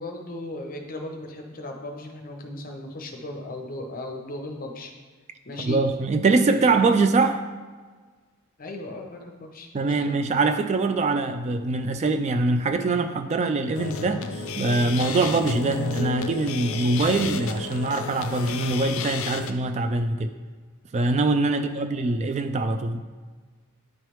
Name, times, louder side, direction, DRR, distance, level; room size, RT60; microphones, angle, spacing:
voice 1, 0.0-4.9 5.4-5.8 6.5-6.6 8.6-10.1 21.5-22.2, left 2 dB, 40° left, 3 dB, 0.8 m, -37 dB
voice 2, 5.6-7.4 9.7-20.3 20.9-23.0, right 3 dB, 30° right, 8 dB, 0.3 m, -23 dB
sound 1, 13.7-19.5, left 4 dB, 65° left, 0.4 m, -32 dB
9.6 x 3.3 x 3.0 m, 1.4 s
head